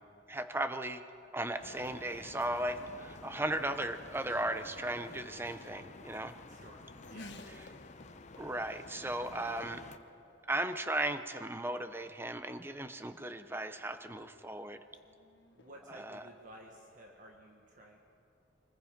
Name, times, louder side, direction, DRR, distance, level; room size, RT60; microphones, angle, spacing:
voice 1, 0.3-1.0 1.3-6.3 8.4-9.8 10.5-14.8 15.9-16.2, right 1 dB, 10° right, 10 dB, 0.8 m, -36 dB
sound 1, 1.6-10.0, left 3 dB, 35° left, 0.7 m, -51 dB
Race car auto racing / Accelerating revving vroom, 1.9-17.0, left 2 dB, 65° left, 1.4 m, -59 dB
voice 2, 6.5-7.3 15.5-18.0, right 1 dB, 45° right, 1 dB, 1.5 m, -54 dB
25.5 x 20.0 x 5.2 m, 2.7 s
head